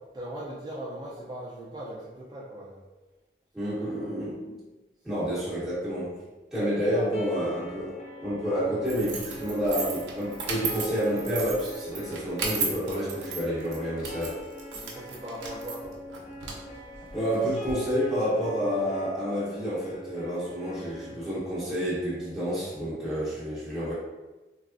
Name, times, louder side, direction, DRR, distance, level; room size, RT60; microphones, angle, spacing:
voice 1, 0.1-2.8 3.6-3.9 14.7-15.8, right 1 dB, 25° right, -8 dB, 0.4 m, -39 dB
voice 2, 3.5-4.4 5.0-6.1 6.5-14.4 17.1-23.9, equal, 5° right, -11 dB, 1.0 m, -29 dB
sound 1, 7.1-23.2, right 1 dB, 40° left, 0.5 m, -43 dB
sound 2, 8.8-17.7, right 4 dB, 90° right, 0.6 m, -36 dB
3.4 x 2.0 x 2.5 m, 1.1 s
head